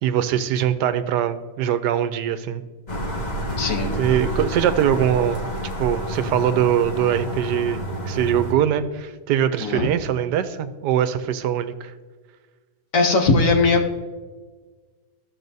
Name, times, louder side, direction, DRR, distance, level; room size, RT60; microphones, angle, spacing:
voice 1, 0.0-2.6 4.0-5.5 5.8-11.9, right 10 dB, 80° right, 11 dB, 1.2 m, -22 dB
sound 1, 2.9-8.5, equal, 30° left, 1.0 m, -29 dB
voice 2, 3.6-3.9 9.6-9.9 12.9-14.0, left 3 dB, 55° left, 3 dB, 1.2 m, -19 dB
15.0 x 6.2 x 2.7 m, 1.4 s
omnidirectional pair, 1.9 m